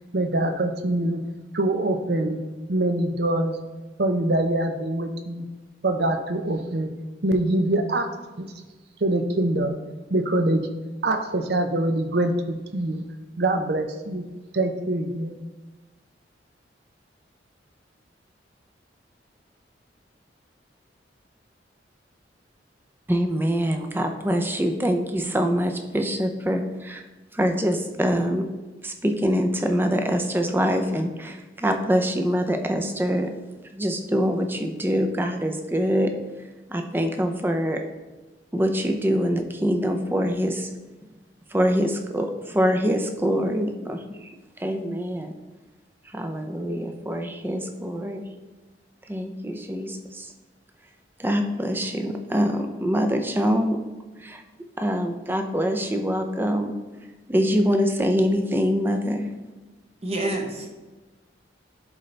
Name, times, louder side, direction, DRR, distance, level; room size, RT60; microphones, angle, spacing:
voice 1, 0.1-1.2 1.5-2.4 2.7-3.6 4.0-5.5 5.8-6.9 7.2-8.1 8.4-8.5 9.0-9.8 10.1-10.6 11.0-13.0 13.4-14.2 14.5-15.4, right 1 dB, 60° right, 6 dB, 0.7 m, -24 dB
voice 2, 23.1-27.0 27.3-28.4 28.8-33.3 33.7-36.1 36.7-37.8 38.5-40.7 41.5-45.3 46.1-48.2 49.1-50.3 51.2-53.8 54.2-54.4 54.8-56.7 57.3-59.3, equal, 10° right, 5 dB, 0.5 m, -24 dB
voice 3, 60.0-60.7, right 1 dB, 35° right, 1 dB, 1.0 m, -28 dB
11.5 x 3.9 x 3.3 m, 1.2 s
head